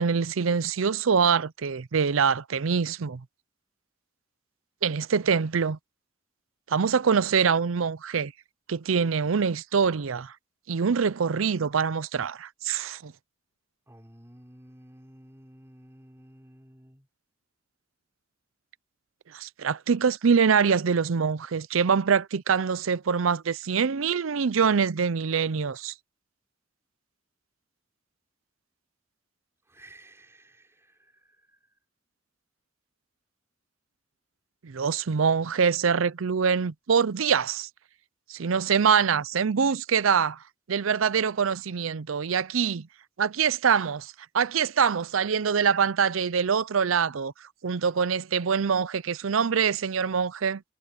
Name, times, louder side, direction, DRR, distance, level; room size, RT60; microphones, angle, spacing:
voice 1, 0.0-3.2 4.8-5.8 6.7-8.3 8.7-10.3 10.7-13.1 19.3-25.9 34.6-37.7 38.3-40.4 40.7-42.9 43.2-47.3 47.6-50.6, right 6 dB, 90° right, 0.6 m, -24 dB
voice 2, 13.9-17.1 29.7-31.6, right 1 dB, 15° right, 5.6 m, -53 dB
head